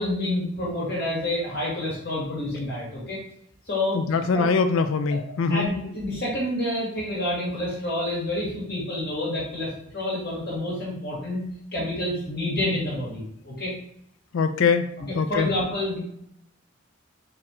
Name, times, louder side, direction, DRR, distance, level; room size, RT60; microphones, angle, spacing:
voice 1, 0.0-3.2 3.7-4.5 5.1-5.2 5.5-11.4 11.7-13.7 15.0-16.0, left 1 dB, 50° left, -5 dB, 1.7 m, -28 dB
voice 2, 3.9-5.7 14.3-14.9 15.2-15.5, left 5 dB, 70° left, 10 dB, 0.4 m, -22 dB
4.4 x 2.5 x 4.2 m, 0.73 s
head